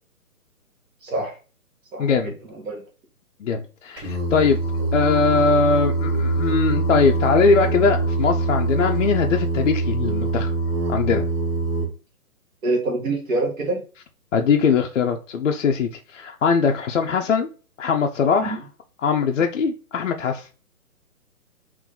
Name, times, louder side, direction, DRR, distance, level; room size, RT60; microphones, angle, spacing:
voice 1, 2.0-2.3 3.4-4.6 4.9-10.5 10.9-11.2 14.3-17.5 17.8-18.6 19.0-20.5, left 5 dB, 55° left, 0.5 m, -21 dB
Singing, 4.0-11.9, right 2 dB, 10° right, 1.8 m, -23 dB
voice 2, 12.6-13.8 18.4-18.6, right 2 dB, 60° right, 1.4 m, -25 dB
3.7 x 2.6 x 3.7 m
hypercardioid pair, 155°, 45 cm